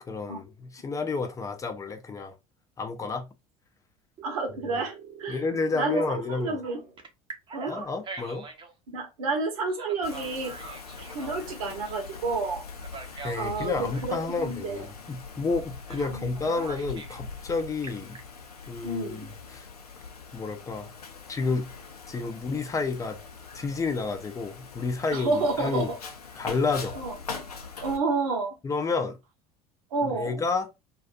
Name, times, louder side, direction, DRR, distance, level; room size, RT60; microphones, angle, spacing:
voice 1, 0.1-2.3 2.8-3.3 5.3-6.6 7.7-8.4 13.1-18.2 18.7-19.7 20.3-20.9 21.3-21.7 22.1-23.2 23.5-25.9 26.4-27.0 28.6-29.2 30.0-30.7, left 4 dB, 15° left, 0.5 m, -30 dB
Telephone, 4.2-6.4 7.0-8.7 9.7-12.0 12.8-14.1 15.9-16.1 16.4-17.2 17.6-18.2, right 5 dB, 25° right, 0.7 m, -44 dB
voice 2, 4.2-5.4 5.7-6.8 7.5-7.7 8.9-12.6 13.3-14.9 16.1-16.7 18.8-19.3 25.1-26.0 26.9-27.2 27.8-28.5 29.9-30.4, right 3 dB, 70° right, 0.9 m, -30 dB
Wind, 10.0-28.0, left 5 dB, 85° left, 0.5 m, -42 dB
2.5 x 2.4 x 2.4 m
figure-of-eight pair, 70°, 19 cm